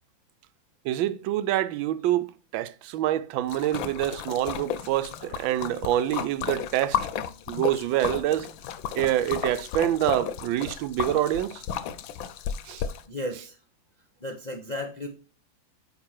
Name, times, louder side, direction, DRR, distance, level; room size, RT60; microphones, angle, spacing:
voice 1, 0.8-7.0 7.5-8.5 8.9-11.6 12.7-12.8, right 13 dB, 80° right, 1.3 m, -26 dB
Splash splatter, 3.5-13.0, left 9 dB, 80° left, 1.4 m, -33 dB
voice 2, 13.1-13.6 14.2-15.1, left 1 dB, 40° left, 0.6 m, -34 dB
8.7 x 3.7 x 4.5 m
omnidirectional pair, 2.1 m